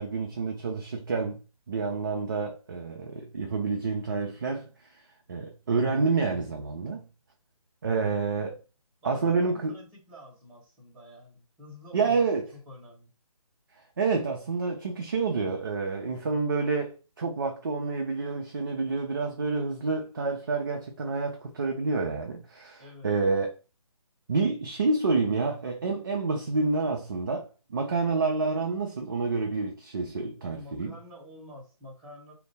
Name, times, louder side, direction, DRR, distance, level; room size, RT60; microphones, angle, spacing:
voice 1, 0.0-1.4 1.7-4.7 5.3-7.0 7.8-8.6 9.0-9.7 11.9-12.5 14.0-23.5 24.3-30.9, right 4 dB, 35° right, 0.4 m, -28 dB
voice 2, 9.0-12.2 12.5-13.1 22.8-23.1 30.4-32.3, left 1 dB, 10° right, 1.0 m, -48 dB
2.5 x 2.1 x 3.3 m
figure-of-eight pair, 150°, 19 cm